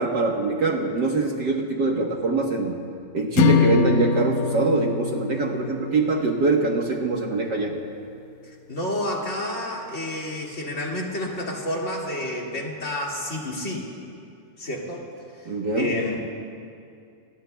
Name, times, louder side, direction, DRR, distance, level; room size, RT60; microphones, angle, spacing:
voice 1, 0.0-2.8 3.1-7.8 15.5-15.9, right 3 dB, 55° right, 0 dB, 1.2 m, -23 dB
sound 1, 3.4-7.7, left 6 dB, 80° left, 2.1 m, -25 dB
voice 2, 8.7-13.9 14.6-15.1 15.8-16.2, left 1 dB, 25° left, -3 dB, 2.1 m, -29 dB
29.0 x 20.0 x 2.3 m, 2.4 s
omnidirectional pair, 3.5 m